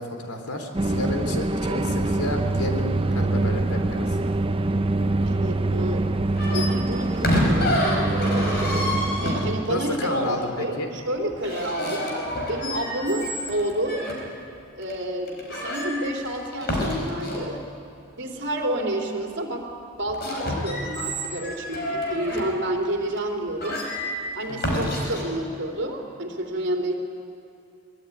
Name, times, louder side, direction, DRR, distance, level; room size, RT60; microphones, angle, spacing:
voice 1, 0.0-4.2 9.7-10.9 24.5-24.8, left 1 dB, 90° left, 4 dB, 3.6 m, -31 dB
sound 1, 0.7-9.6, right 2 dB, 25° right, 0.6 m, -24 dB
voice 2, 5.2-8.4 9.2-12.1 12.5-14.1 14.7-17.6 18.1-19.7 20.0-23.8 24.3-26.9, right 1 dB, 55° right, 1 dB, 3.6 m, -29 dB
sound 2, 6.3-9.8 11.3-14.2 14.8-14.9 15.3-17.5 20.0-22.5 23.2-23.3 23.6-25.2, left 1 dB, 45° left, 5.2 m, -28 dB
23.5 x 21.0 x 9.6 m, 2.6 s
head